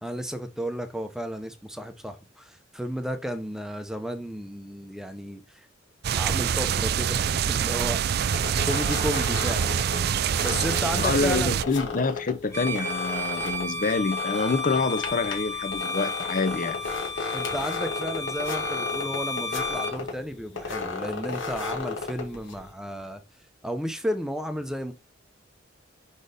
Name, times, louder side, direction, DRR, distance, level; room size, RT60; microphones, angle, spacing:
voice 1, 0.0-5.4 6.1-8.3 8.6-9.8 10.4-11.5 17.3-23.2 23.6-24.9, equal, 5° right, 0.8 m, -33 dB
sound 1, 6.0-11.6, right 8 dB, 55° right, 0.4 m, -25 dB
sound 2, 8.3-22.7, left 4 dB, 85° left, 1.8 m, -35 dB
voice 2, 10.9-16.8, left 4 dB, 45° left, 0.8 m, -27 dB
Bowed string instrument, 12.5-20.0, left 3 dB, 15° left, 2.1 m, -32 dB
5.4 x 4.3 x 5.0 m
head